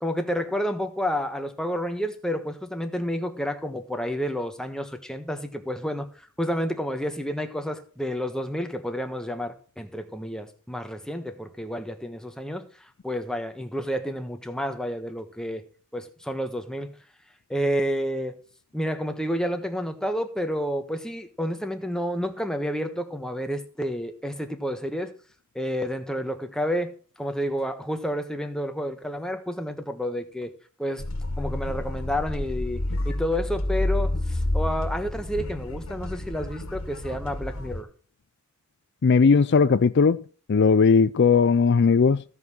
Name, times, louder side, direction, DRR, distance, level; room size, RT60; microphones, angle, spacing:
voice 1, 0.0-6.1 6.4-12.7 13.0-15.6 15.9-16.9 17.5-18.4 18.7-25.1 25.5-26.9 27.2-30.5 30.8-31.1 31.4-37.9, equal, 5° left, 1.3 m, -30 dB
sound 1, 31.0-37.8, left 1 dB, 75° left, 1.7 m, -29 dB
voice 2, 39.0-40.2 40.5-42.2, left 5 dB, 55° left, 0.4 m, -18 dB
15.5 x 5.6 x 6.3 m
head